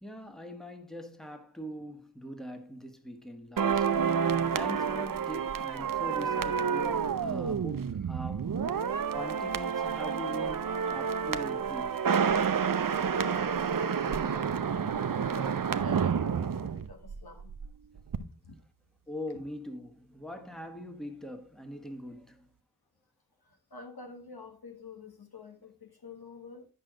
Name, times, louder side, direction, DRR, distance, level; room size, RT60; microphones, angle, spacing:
voice 1, 0.0-4.0 4.5-8.6 9.1-11.9 19.1-22.5, equal, ahead, 1.4 m, -42 dB
sound 1, 3.6-17.7 18.0-18.2, right 7 dB, 65° right, 0.6 m, -29 dB
voice 2, 12.6-17.5 18.2-18.6 23.4-26.7, left 4 dB, 80° left, 1.6 m, -47 dB
8.7 x 6.5 x 3.7 m
wide cardioid pair, 40°, 37 cm